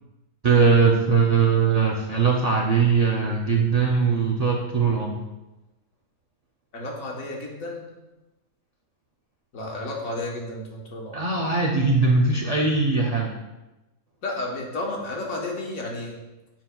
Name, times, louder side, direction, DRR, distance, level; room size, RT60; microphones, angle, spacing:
voice 1, 0.4-5.2 11.1-13.3, right 5 dB, 60° right, -1 dB, 0.4 m, -20 dB
voice 2, 6.7-7.9 9.5-11.2 14.2-16.2, left 2 dB, 80° left, -1 dB, 1.5 m, -32 dB
7.3 x 5.9 x 2.2 m, 1.0 s
omnidirectional pair, 1.4 m